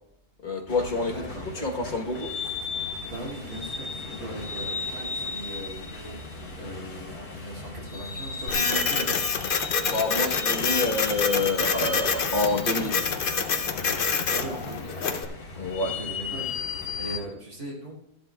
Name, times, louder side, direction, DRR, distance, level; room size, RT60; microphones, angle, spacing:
voice 1, 0.4-1.1 1.6-2.3 9.8-13.0 15.6-15.9, left 2 dB, 35° left, 1 dB, 1.2 m, -27 dB
sound 1, 0.7-17.2, left 4 dB, 70° left, 2.3 m, -36 dB
voice 2, 1.1-1.5 3.1-9.3 14.3-15.3 15.8-18.0, right 1 dB, 75° right, -4 dB, 3.1 m, -39 dB
Printer, 8.5-15.2, left 5 dB, 50° left, 0.7 m, -27 dB
14.0 x 11.5 x 2.3 m, 0.79 s
omnidirectional pair, 1.6 m